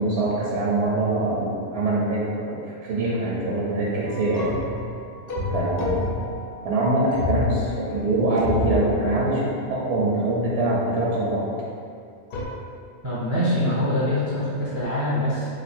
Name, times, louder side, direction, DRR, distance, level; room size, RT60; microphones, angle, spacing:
voice 1, 0.0-4.5 5.5-6.1 6.6-11.5, right 2 dB, 85° right, -5 dB, 1.0 m, -24 dB
sound 1, 4.1-11.0 12.3-12.5, left 2 dB, 60° left, 0.7 m, -31 dB
voice 2, 13.0-15.5, left 1 dB, 20° right, -9 dB, 0.5 m, -24 dB
2.6 x 2.5 x 4.2 m, 2.3 s
omnidirectional pair, 1.2 m